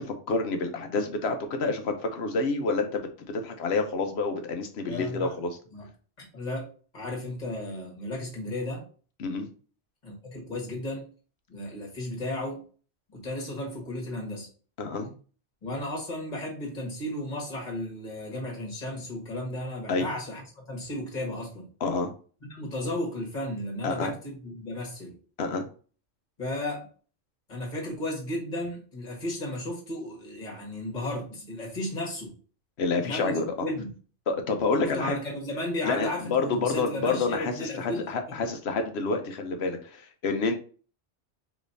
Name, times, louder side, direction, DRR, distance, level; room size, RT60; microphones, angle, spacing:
voice 1, 0.0-5.6 9.2-9.5 14.8-15.1 19.9-20.1 21.8-22.1 23.8-24.1 25.4-25.7 32.8-33.7 34.3-35.2 35.8-40.5, left 3 dB, 65° left, 5 dB, 1.0 m, -28 dB
voice 2, 4.9-5.3 5.7-5.9 6.3-6.7 6.9-8.8 10.0-11.1 11.5-12.6 13.1-14.5 15.6-21.7 22.4-25.1 26.4-26.9 27.5-32.3 33.0-33.3 33.6-33.9 34.8-38.5, left 1 dB, 40° left, -1 dB, 1.6 m, -34 dB
5.0 x 3.1 x 2.6 m, 0.40 s
omnidirectional pair, 1.2 m